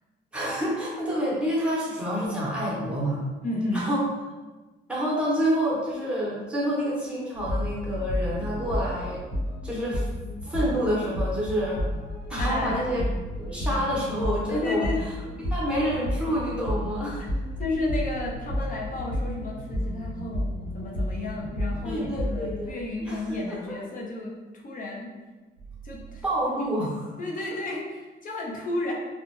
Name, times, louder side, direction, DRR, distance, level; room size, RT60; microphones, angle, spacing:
voice 1, 0.3-3.2 3.7-4.0 4.9-9.2 9.6-10.1 10.4-11.9 12.3-13.0 13.4-15.1 15.5-17.3 21.8-22.7 23.0-23.2 23.5-23.8 26.2-27.1, equal, 5° right, -5 dB, 0.9 m, -28 dB
voice 2, 3.4-3.9 12.4-12.8 14.5-15.0 17.6-25.1 25.8-26.2 26.6-26.7 27.2-28.9, left 2 dB, 45° left, -2 dB, 0.7 m, -32 dB
sound 1, 7.3-9.7 11.5-14.0 16.3-18.9 21.2-23.8 25.6-26.2, right 2 dB, 65° right, 0.5 m, -43 dB
sound 2, 7.4-22.6, left 1 dB, 60° left, 1.0 m, -31 dB
2.4 x 2.1 x 3.0 m, 1.2 s
cardioid pair, 90°, 20 cm